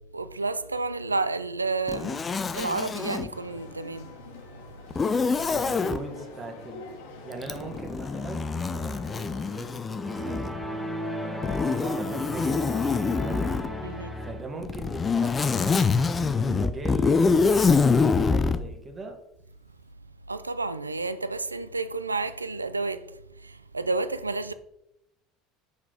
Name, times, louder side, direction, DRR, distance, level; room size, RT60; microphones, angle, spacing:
voice 1, 0.1-2.2 2.5-4.1 13.8-14.2 20.3-23.0 23.4-24.5, right 3 dB, 90° right, 0.3 m, -30 dB
Zipper (clothing), 1.9-3.3 4.9-6.0 7.4-10.6 11.4-13.7 14.6-18.6, left 4 dB, 25° left, 0.5 m, -25 dB
sound 1, 3.3-9.7, left 4 dB, 70° left, 1.2 m, -46 dB
voice 2, 5.5-6.9 7.2-13.5 13.8-15.9 16.3-19.2, right 3 dB, 25° right, 1.6 m, -40 dB
sound 2, 10.0-14.6, equal, ahead, 1.4 m, -34 dB
5.9 x 4.4 x 5.0 m
figure-of-eight pair, 70°, 0 cm